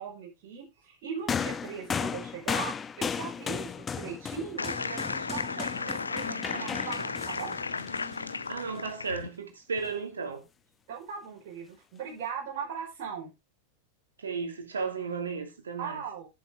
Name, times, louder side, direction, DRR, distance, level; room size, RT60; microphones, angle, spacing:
voice 1, 0.0-7.6 10.9-13.3 15.8-16.3, right 7 dB, 45° right, 4.9 m, -39 dB
sound 1, 1.3-8.8 9.8-9.9, left 6 dB, 20° left, 0.6 m, -35 dB
sound 2, 4.6-9.3, left 4 dB, 75° left, 0.5 m, -35 dB
voice 2, 8.5-10.4 14.2-16.0, right 5 dB, 70° right, 2.7 m, -34 dB
11.0 x 9.7 x 3.6 m
figure-of-eight pair, 90°, 0 cm